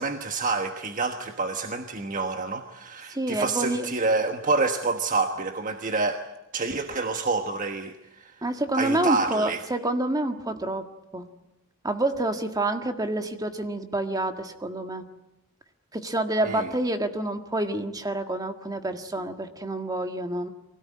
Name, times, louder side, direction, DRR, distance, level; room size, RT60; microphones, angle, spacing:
voice 1, 0.0-6.2 6.5-8.3 8.7-9.6 16.4-16.7, right 3 dB, 40° right, 6 dB, 1.3 m, -28 dB
voice 2, 3.1-3.9 8.4-10.9 11.1-11.2 11.8-15.0 15.9-20.5, right 1 dB, 20° right, 7 dB, 1.7 m, -28 dB
24.0 x 17.5 x 9.7 m, 0.91 s
head